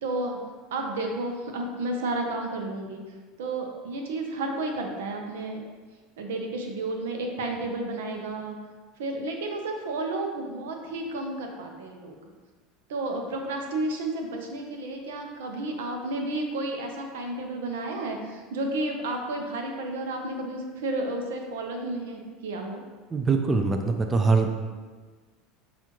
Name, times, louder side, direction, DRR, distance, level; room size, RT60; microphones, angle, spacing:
voice 1, 0.0-0.4 0.7-3.0 3.4-5.6 6.2-8.6 9.0-12.2 12.9-22.8, right 2 dB, 90° right, 3 dB, 0.6 m, -32 dB
voice 2, 23.1-24.5, right 4 dB, 20° right, 5 dB, 0.3 m, -23 dB
5.9 x 2.4 x 2.9 m, 1.4 s
supercardioid pair, 110°, 0 cm